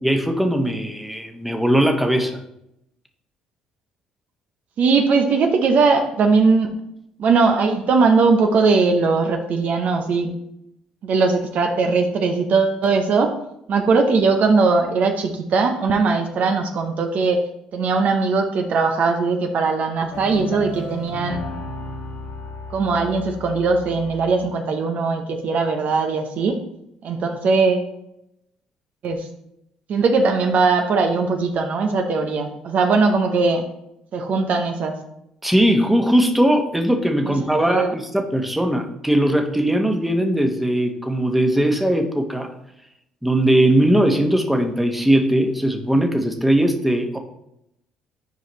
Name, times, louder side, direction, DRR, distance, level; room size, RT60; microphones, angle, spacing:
voice 1, 0.0-2.4 35.4-42.5 43.2-47.2, right 1 dB, 5° right, 4 dB, 1.2 m, -19 dB
voice 2, 4.8-6.7 7.2-10.3 11.0-13.3 13.7-17.4 17.7-21.4 22.7-26.6 27.0-27.9 29.0-29.3 29.9-33.6 34.1-34.9 37.2-37.4 37.7-37.9, right 4 dB, 55° right, 5 dB, 0.8 m, -19 dB
sound 1, 20.1-24.6, left 2 dB, 70° left, 1.3 m, -34 dB
9.1 x 4.9 x 3.1 m, 0.80 s
hypercardioid pair, 55°, 3 cm